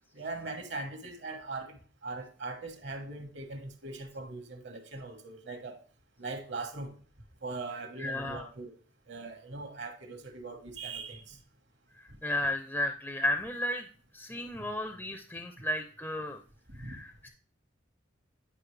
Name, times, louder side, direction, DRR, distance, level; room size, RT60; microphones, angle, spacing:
voice 1, 0.1-5.8 6.2-6.9 7.4-8.7 9.1-11.4 16.7-17.0, right 3 dB, 65° right, 5 dB, 1.4 m, -40 dB
voice 2, 8.0-8.4 12.0-13.9 14.1-16.4 16.8-17.3, left 1 dB, 10° left, 6 dB, 0.4 m, -33 dB
9.7 x 5.2 x 3.2 m, 0.41 s
head